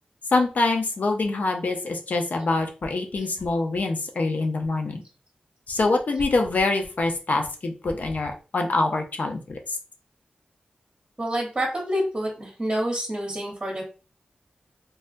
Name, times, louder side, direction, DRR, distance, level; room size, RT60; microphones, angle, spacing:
voice 1, 0.3-5.0 5.7-9.8, left 3 dB, 60° left, 3 dB, 0.6 m, -25 dB
voice 2, 11.2-13.8, equal, 25° right, -2 dB, 1.0 m, -27 dB
3.3 x 2.2 x 2.5 m, 0.35 s
wide cardioid pair, 70°, 3 cm